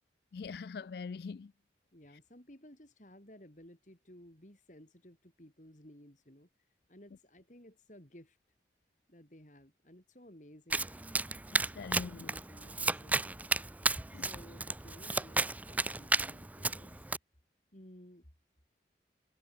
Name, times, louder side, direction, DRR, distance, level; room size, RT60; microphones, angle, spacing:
voice 1, 0.3-1.5 2.1-2.2 11.5-12.3 14.1-14.3, left 5 dB, 60° left, 0.4 m, -43 dB
voice 2, 1.9-6.5 6.9-8.4 9.1-10.9 12.0-13.5 14.2-17.0 17.7-18.3, equal, 45° left, 3.9 m, -56 dB
Domestic sounds home sounds, 10.7-17.2, right 3 dB, 10° right, 0.5 m, -33 dB
head